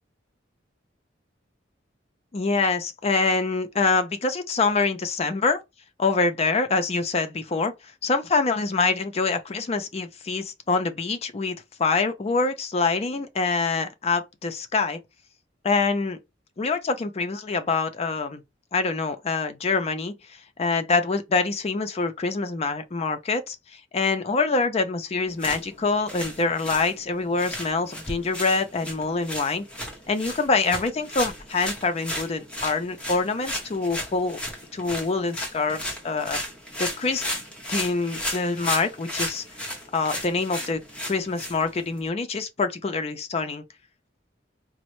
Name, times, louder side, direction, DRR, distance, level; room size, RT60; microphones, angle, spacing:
voice 1, 2.3-5.6 6.0-7.7 8.0-15.0 15.6-16.2 16.6-18.4 18.7-20.1 20.6-29.7 30.1-34.4 34.7-36.4 36.8-37.4 37.7-39.4 39.9-43.6, left 4 dB, 35° left, 0.4 m, -25 dB
sound 1, 25.3-42.1, left 1 dB, 5° left, 0.8 m, -35 dB
4.0 x 2.0 x 3.0 m
head